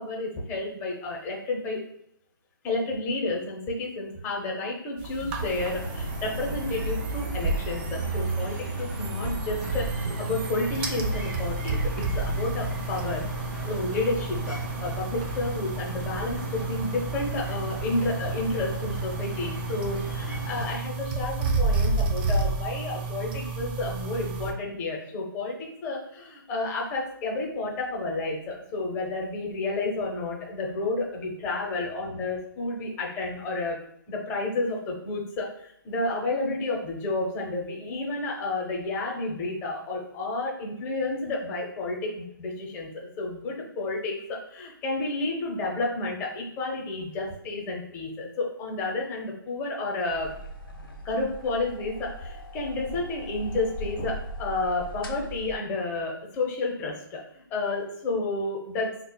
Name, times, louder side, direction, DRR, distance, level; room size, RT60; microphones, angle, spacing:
voice 1, 0.0-1.8 2.6-13.3 13.6-33.8 34.1-50.3 51.0-58.9, left 2 dB, 20° left, -2 dB, 0.8 m, -31 dB
sound 1, 5.0-24.5, right 3 dB, 25° right, 0.4 m, -31 dB
sound 2, 5.4-20.7, right 1 dB, 10° right, 1.0 m, -36 dB
sound 3, 50.1-55.6, equal, 80° left, 0.6 m, -39 dB
5.5 x 2.3 x 2.3 m, 0.76 s
hypercardioid pair, 150°, 12 cm